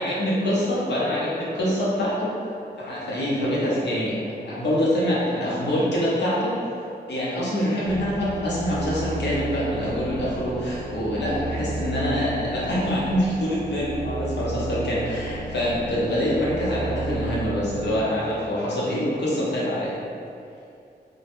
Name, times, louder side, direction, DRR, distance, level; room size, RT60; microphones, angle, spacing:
voice 1, 0.0-4.2 4.4-20.0, equal, 80° left, -7 dB, 0.7 m, -25 dB
sound 1, 7.8-18.1, right 2 dB, 10° left, 0.3 m, -33 dB
2.1 x 2.0 x 2.9 m, 2.5 s
wide cardioid pair, 125°, 18 cm